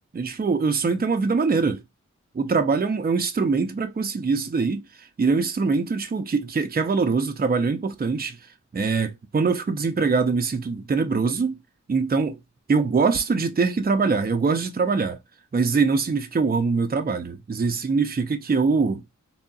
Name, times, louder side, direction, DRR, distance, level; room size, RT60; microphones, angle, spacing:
voice 1, 0.1-1.8 2.3-8.4 8.7-11.6 11.9-12.4 12.7-15.2 15.5-19.0, right 4 dB, 30° right, 0.5 m, -23 dB
3.5 x 2.0 x 2.3 m
wide cardioid pair, 50°, 31 cm